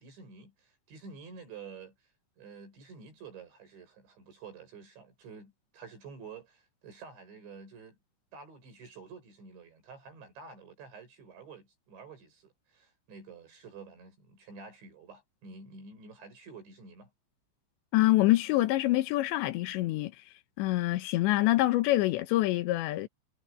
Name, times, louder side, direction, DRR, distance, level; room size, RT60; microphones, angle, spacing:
voice 1, 0.0-2.0 2.4-8.0 8.3-17.1, right 5 dB, 70° right, 9.9 m, -49 dB
voice 2, 17.9-20.1 20.6-23.1, left 17 dB, 80° left, 3.0 m, -26 dB
omnidirectional pair, 5.4 m